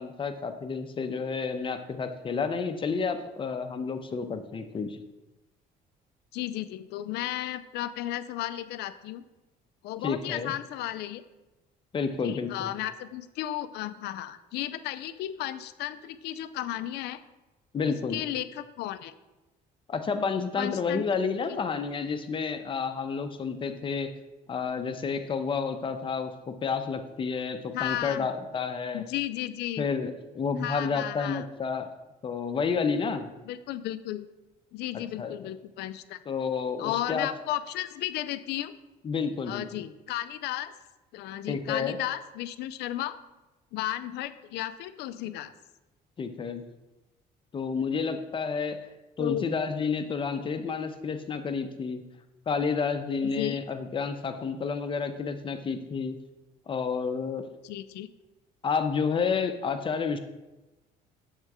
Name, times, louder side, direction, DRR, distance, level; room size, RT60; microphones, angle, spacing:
voice 1, 0.0-5.0 10.0-10.5 11.9-12.7 17.7-18.2 19.9-24.1 24.5-29.0 29.8-31.9 32.2-33.3 35.2-35.3 36.3-37.3 39.0-39.6 41.5-42.0 46.2-46.6 47.5-48.8 49.2-52.0 52.5-56.2 56.7-57.4 58.6-60.2, left 5 dB, 30° left, 8 dB, 0.6 m, -30 dB
voice 2, 6.3-9.2 9.8-11.2 12.2-17.2 18.1-19.1 20.6-21.0 27.7-28.3 28.9-29.9 30.6-31.4 33.5-34.3 34.7-36.2 36.8-38.7 39.4-40.7 41.1-43.2 43.7-45.5 49.2-49.4 53.2-53.6 57.6-58.1, left 13 dB, 80° left, 13 dB, 0.4 m, -34 dB
6.6 x 3.7 x 4.7 m, 1.1 s
cardioid pair, 110°, 17 cm